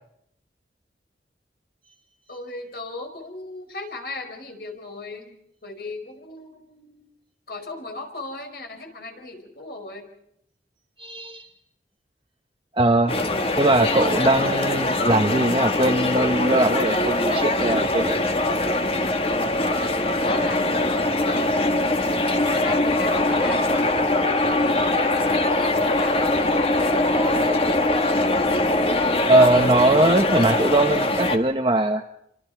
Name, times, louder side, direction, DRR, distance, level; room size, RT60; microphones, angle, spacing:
voice 1, 2.3-5.4 5.6-7.1 7.5-10.1 20.2-21.6 22.6-28.2, left 2 dB, 60° left, 5 dB, 4.8 m, -37 dB
voice 2, 11.0-11.5 12.7-13.2 13.6-18.3 29.3-32.0, right 2 dB, 30° right, 2 dB, 1.1 m, -20 dB
sound 1, 13.1-31.4, left 2 dB, 35° left, 1.6 m, -22 dB
29.5 x 25.0 x 4.6 m, 0.75 s
head